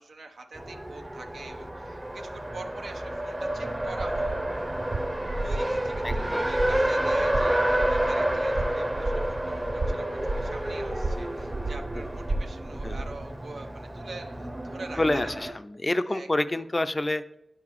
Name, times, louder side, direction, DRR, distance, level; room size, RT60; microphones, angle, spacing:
voice 1, 0.0-4.4 5.4-15.3 16.1-16.3 16.5-16.6, right 3 dB, 85° right, 3 dB, 0.7 m, -44 dB
Race car auto racing, 0.5-15.5, right 1 dB, 20° right, 0.7 m, -30 dB
sound 1, 3.8-13.2, right 2 dB, 60° right, 0.3 m, -34 dB
voice 2, 6.0-6.4 12.8-13.0 15.0-17.2, left 1 dB, 30° left, 12 dB, 0.4 m, -27 dB
8.7 x 5.8 x 3.1 m, 0.88 s
cardioid pair, 60°, 0 cm